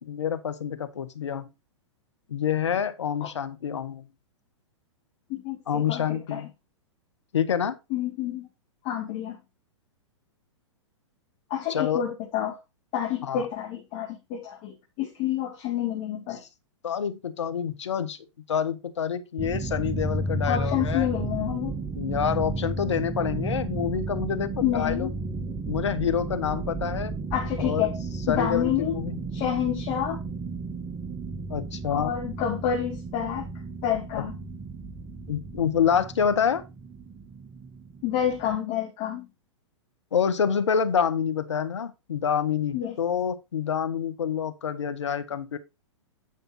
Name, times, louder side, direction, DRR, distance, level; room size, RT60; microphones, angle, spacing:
voice 1, 0.0-1.5 2.3-4.1 5.7-6.5 7.3-7.8 11.7-12.0 13.2-13.4 16.8-18.2 18.5-21.1 22.0-25.1 25.7-27.1 27.6-27.9 28.3-29.2 31.5-32.1 35.3-36.6 40.1-45.6, left 8 dB, 70° left, 1.2 m, -27 dB
voice 2, 5.3-6.4 7.9-8.5 8.8-9.4 11.5-12.6 12.9-16.4 20.4-21.8 24.6-25.1 27.3-28.0 28.3-29.0 29.3-30.2 31.9-33.5 33.8-34.4 38.0-39.3 42.7-43.0, left 10 dB, 40° left, 2.1 m, -28 dB
sound 1, 19.4-38.6, right 3 dB, 15° right, 1.1 m, -33 dB
9.6 x 5.2 x 4.2 m
figure-of-eight pair, 110°, 16 cm